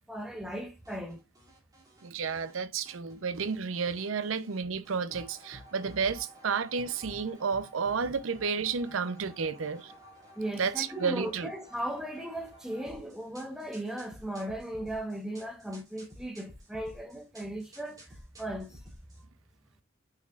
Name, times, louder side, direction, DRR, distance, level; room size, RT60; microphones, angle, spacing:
voice 1, 0.1-1.2 10.4-18.0 18.4-18.7, right 1 dB, 5° right, 1.0 m, -37 dB
sound 1, 0.8-2.6 2.8-4.6 4.8-19.2, equal, 20° right, 2.7 m, -52 dB
voice 2, 2.0-9.9 10.6-11.5, right 5 dB, 90° right, 0.6 m, -31 dB
6.5 x 6.3 x 2.4 m
head